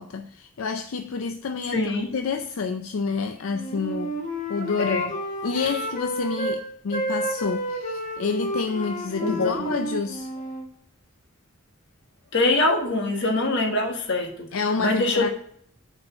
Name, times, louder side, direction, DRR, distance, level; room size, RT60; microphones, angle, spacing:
voice 1, 0.0-1.8 2.1-4.1 4.5-5.0 5.4-10.3 14.5-15.3, left 5 dB, 80° left, 0.5 m, -29 dB
voice 2, 1.7-2.1 4.8-5.1 5.5-5.7 9.2-9.8 12.3-14.5 14.8-15.3, left 2 dB, 60° left, 1.4 m, -24 dB
Wind instrument woodwind instrument, 3.5-6.6 6.9-10.7, right 1 dB, 40° left, 1.3 m, -30 dB
6.0 x 4.6 x 6.1 m
head